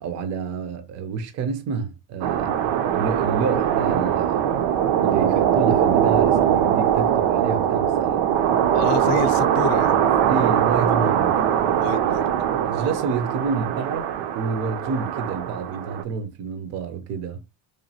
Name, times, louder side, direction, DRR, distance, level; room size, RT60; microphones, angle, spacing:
voice 1, 0.0-2.5 2.9-4.4 5.0-8.1 10.3-11.4 12.0-12.3 12.6-17.4, right 5 dB, 40° right, 0.4 m, -29 dB
sound 1, 2.2-16.0, right 9 dB, 85° right, 0.6 m, -21 dB
voice 2, 8.7-10.0 11.8-12.2, left 8 dB, 55° left, 0.5 m, -29 dB
3.0 x 2.3 x 2.7 m
cardioid pair, 145°, 44 cm